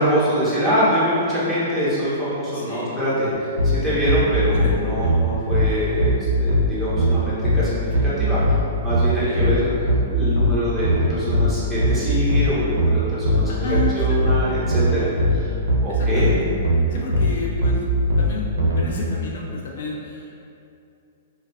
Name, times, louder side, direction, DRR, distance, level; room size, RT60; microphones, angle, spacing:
voice 1, 0.0-9.7 10.0-15.5 15.8-16.4, equal, ahead, -12 dB, 0.7 m, -24 dB
voice 2, 2.5-3.0 4.5-4.7 5.0-5.1 5.4-5.6 9.2-9.6 13.5-14.0 14.3-14.6 15.9-16.5 16.9-17.9 18.2-20.4, left 3 dB, 65° left, -2 dB, 0.5 m, -32 dB
sound 1, 3.6-18.8, equal, 90° right, 0.4 m, -20 dB
2.2 x 2.2 x 2.5 m, 2.6 s
hypercardioid pair, 140°, 0 cm